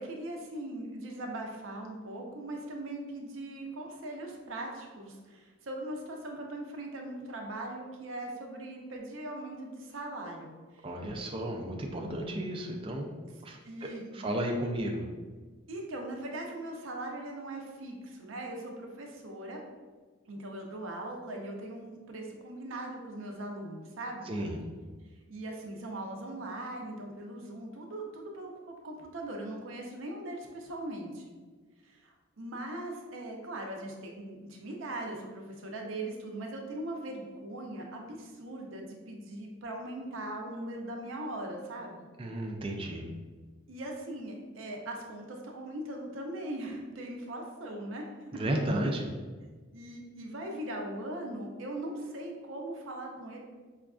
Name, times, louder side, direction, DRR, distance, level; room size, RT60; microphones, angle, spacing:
voice 1, 0.0-10.9 13.3-14.2 15.7-19.6 20.3-24.3 25.3-31.2 31.8-42.1 43.7-48.0 48.3-48.4 49.7-53.4, right 1 dB, 75° right, 1 dB, 0.6 m, -40 dB
voice 2, 10.8-13.1 13.4-13.6 14.1-15.0 24.3-24.6 42.2-43.1 48.3-49.1, right 1 dB, 25° right, 1 dB, 0.3 m, -33 dB
5.0 x 2.4 x 2.3 m, 1.4 s
head